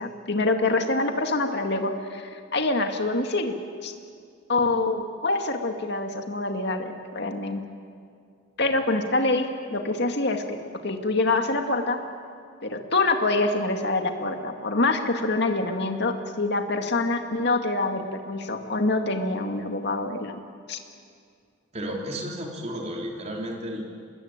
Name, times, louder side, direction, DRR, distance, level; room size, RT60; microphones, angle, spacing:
voice 1, 0.0-3.5 3.8-3.9 4.5-7.6 8.6-10.6 10.8-12.0 12.6-20.4 20.7-20.8, left 2 dB, 60° left, 5 dB, 2.2 m, -25 dB
voice 2, 21.7-23.8, equal, 35° right, 0 dB, 3.6 m, -32 dB
25.0 x 21.0 x 9.0 m, 2.3 s
head